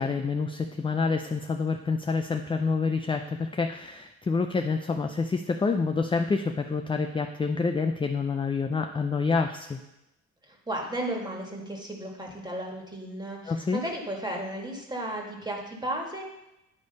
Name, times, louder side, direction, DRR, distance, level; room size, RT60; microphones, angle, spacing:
voice 1, 0.0-9.8 13.5-13.8, left 4 dB, 15° left, 6 dB, 0.4 m, -27 dB
voice 2, 10.5-16.2, right 1 dB, 15° right, 0 dB, 1.7 m, -34 dB
9.8 x 3.4 x 5.3 m, 0.90 s
cardioid pair, 90°, 30 cm